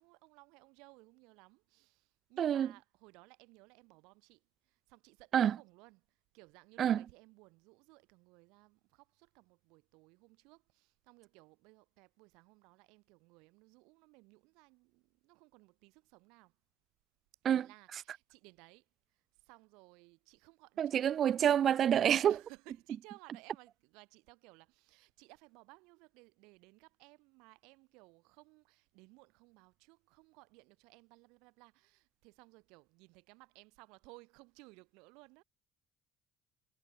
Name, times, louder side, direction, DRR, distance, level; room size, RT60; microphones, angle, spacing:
voice 1, 0.0-16.6 17.6-21.2 22.2-35.4, right 27 dB, 80° right, 3.9 m, -60 dB
voice 2, 2.4-2.7 5.3-5.6 6.8-7.0 17.4-17.7 20.8-22.3, right 9 dB, 55° right, 0.4 m, -27 dB
hypercardioid pair, 65°, 0 cm